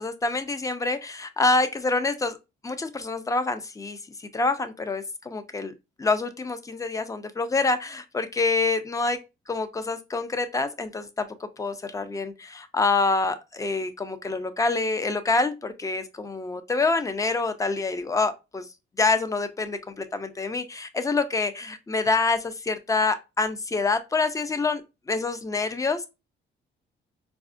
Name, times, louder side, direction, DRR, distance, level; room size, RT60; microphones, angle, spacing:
voice 1, 0.0-2.4 2.6-5.7 6.0-9.2 9.5-18.7 19.0-26.1, left 3 dB, 15° left, 0.4 m, -26 dB
4.1 x 2.3 x 2.4 m
cardioid pair, 90°, 20 cm